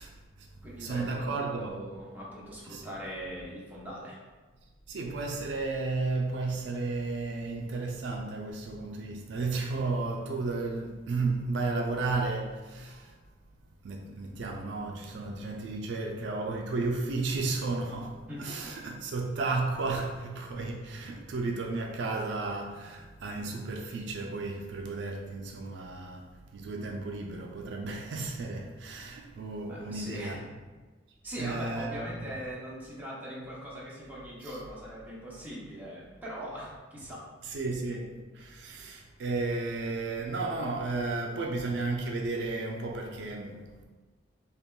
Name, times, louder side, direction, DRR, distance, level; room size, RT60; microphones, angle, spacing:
voice 1, 0.0-0.5 0.8-1.8 2.7-2.8 4.9-13.1 13.8-30.4 31.4-32.1 37.4-43.8, right 3 dB, 65° right, 0.4 m, -33 dB
voice 2, 0.6-4.2 18.3-18.5 29.7-30.4 31.2-37.3, equal, 10° right, 0.8 m, -41 dB
5.4 x 2.2 x 2.2 m
head